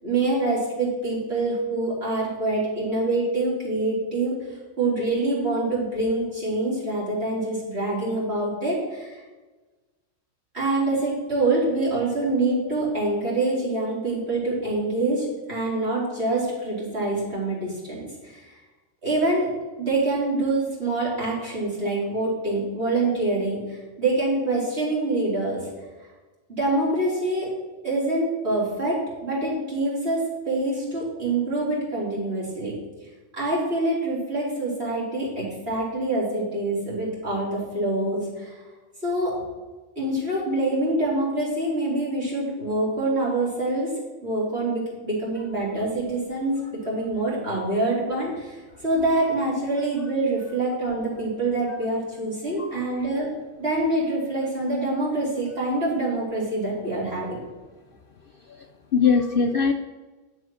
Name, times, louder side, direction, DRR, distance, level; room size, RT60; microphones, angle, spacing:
voice 1, 0.0-9.2 10.5-18.6 19.0-19.5 19.8-25.7 26.5-27.5 27.8-32.8 33.3-38.6 39.0-39.4 40.0-43.9 44.2-53.3 53.6-57.4, right 2 dB, 55° right, -6 dB, 4.1 m, -25 dB
voice 2, 52.6-53.0 58.5-58.7 58.9-59.7, left 5 dB, 60° left, 6 dB, 0.6 m, -22 dB
10.0 x 6.3 x 6.3 m, 1.2 s
omnidirectional pair, 1.3 m